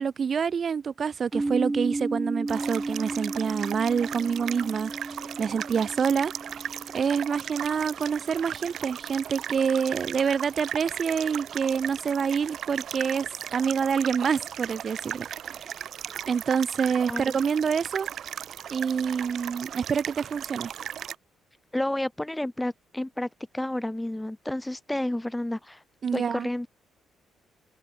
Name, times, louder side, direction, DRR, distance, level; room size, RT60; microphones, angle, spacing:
voice 1, 0.0-4.9 5.4-6.3 6.9-15.3 16.3-18.1 18.7-20.7 26.0-26.5, right 6 dB, 45° right, 1.3 m, -27 dB
sound 1, 1.3-9.1, right 2 dB, 15° right, 2.4 m, -34 dB
sound 2, 2.5-21.1, right 9 dB, 65° right, 0.7 m, -37 dB
voice 2, 21.7-23.3 23.5-25.8 26.1-26.7, left 1 dB, 10° left, 0.7 m, -30 dB
open air
cardioid pair, 90°, 0 cm